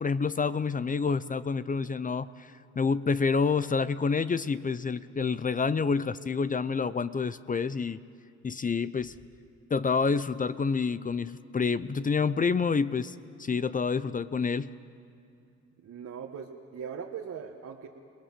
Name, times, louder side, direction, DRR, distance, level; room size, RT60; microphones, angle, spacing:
voice 1, 0.0-2.5 2.8-8.0 8.4-9.1 9.7-13.1 13.4-14.7, left 5 dB, 25° left, 15 dB, 0.6 m, -28 dB
voice 2, 15.8-17.9, right 7 dB, 60° right, 0 dB, 1.7 m, -40 dB
29.0 x 19.0 x 7.6 m, 2.6 s
cardioid pair, 90°, 30 cm